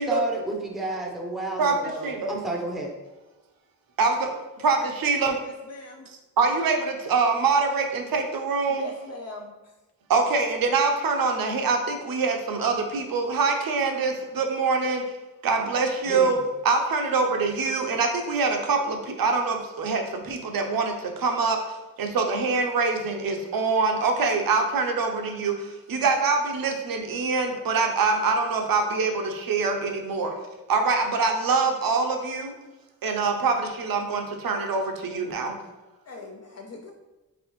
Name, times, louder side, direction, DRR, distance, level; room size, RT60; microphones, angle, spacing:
voice 1, 0.1-3.0 16.1-16.3, right 1 dB, ahead, 0 dB, 0.6 m, -31 dB
voice 2, 4.0-5.4 6.4-8.9 10.1-15.0 15.4-21.6 22.0-30.3 30.7-32.6 33.0-35.6, right 4 dB, 75° right, 4 dB, 0.7 m, -24 dB
voice 3, 5.4-6.1 8.7-9.5 36.1-36.9, left 2 dB, 45° left, 1 dB, 0.4 m, -40 dB
4.0 x 3.4 x 3.0 m, 1.1 s
wide cardioid pair, 90°, 36 cm